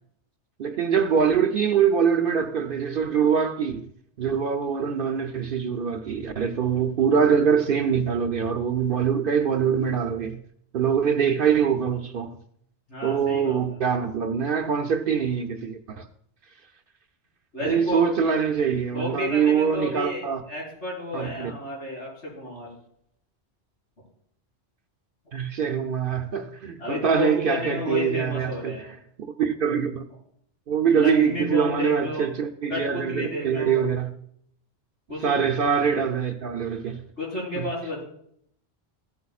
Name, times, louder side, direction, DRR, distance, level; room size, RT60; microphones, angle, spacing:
voice 1, 0.6-3.8 4.2-10.4 10.7-12.4 13.0-16.1 17.6-20.4 21.1-21.5 25.3-30.0 30.7-34.1 35.2-37.0 37.5-37.7, right 7 dB, 60° right, 0.7 m, -24 dB
voice 2, 12.9-13.8 17.5-18.0 18.9-22.7 26.8-28.9 30.9-32.3 32.7-33.9 35.1-35.3 37.2-38.0, left 2 dB, 80° left, 5.0 m, -31 dB
15.5 x 8.3 x 2.4 m
omnidirectional pair, 1.2 m